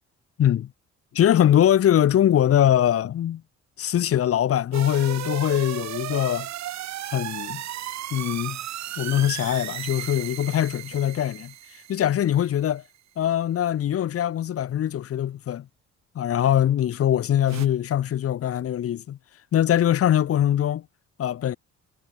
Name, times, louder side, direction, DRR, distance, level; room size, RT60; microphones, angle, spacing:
voice 1, 0.4-0.7 1.1-3.4 3.8-6.5 7.1-7.6 8.1-8.6 9.0-11.5 11.9-12.8 13.2-15.7 16.1-19.2 19.5-20.8 21.2-21.6, left 11 dB, 50° left, 0.7 m, -22 dB
sound 1, 4.7-12.6 17.5-17.7, right 13 dB, 65° right, 0.9 m, -35 dB
cardioid pair, 90°, 30 cm